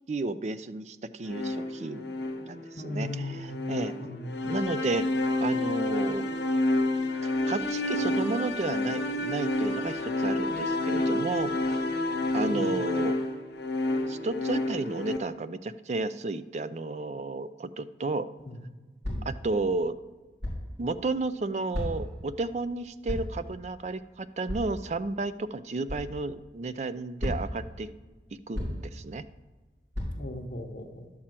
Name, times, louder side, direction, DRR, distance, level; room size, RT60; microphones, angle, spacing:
voice 1, 0.1-4.1 4.4-5.1 5.4-6.3 7.2-11.8 12.3-13.2 14.1-18.3 19.3-20.0 20.8-27.9 28.3-29.2, right 3 dB, 40° right, 14 dB, 0.4 m, -32 dB
sound 1, 1.3-15.2, left 2 dB, 80° left, 1.0 m, -29 dB
voice 2, 2.8-3.5 4.0-4.4 12.5-12.7 19.1-19.3 30.2-31.1, left 2 dB, 45° left, -5 dB, 0.9 m, -37 dB
sound 2, 19.0-19.4 20.4-20.7 21.7-22.2 23.1-23.4 24.5-24.7 25.9-26.1 27.2-27.6 28.5-28.9 29.9-30.1, left 1 dB, 75° right, 3.4 m, -33 dB
11.0 x 4.3 x 7.5 m, 1.3 s
head